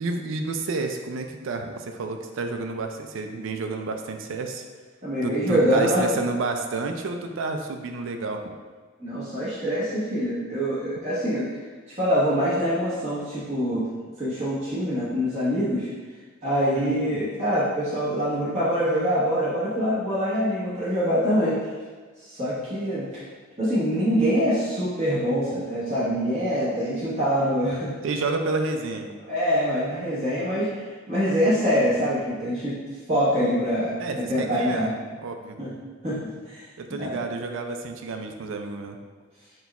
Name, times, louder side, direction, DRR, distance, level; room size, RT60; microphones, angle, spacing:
voice 1, 0.0-4.6 5.2-8.4 16.8-17.2 28.0-29.1 34.0-34.9 35.2-35.7 36.8-39.0, right 3 dB, 75° right, 5 dB, 0.4 m, -30 dB
voice 2, 5.0-6.2 9.0-11.5 12.0-13.9 14.2-15.9 16.4-21.6 22.2-23.2 23.6-27.9 29.3-32.8 33.1-34.9 35.6-35.7 36.0-36.6 37.0-37.2, equal, 30° right, -10 dB, 1.0 m, -24 dB
4.3 x 2.3 x 4.1 m, 1.4 s
head